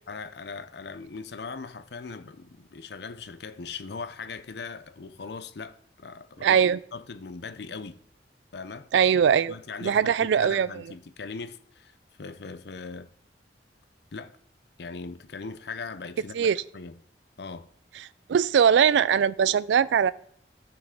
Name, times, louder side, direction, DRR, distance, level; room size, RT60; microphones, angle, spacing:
voice 1, 0.1-8.0 8.5-8.9 9.5-13.1 14.1-14.4 14.8-17.0 17.4-17.7, left 4 dB, 60° left, 0.6 m, -40 dB
voice 2, 6.4-6.8 8.9-9.5 9.8-10.7 16.3-16.6 18.3-20.1, right 7 dB, 75° right, 0.3 m, -21 dB
15.5 x 5.9 x 3.7 m
head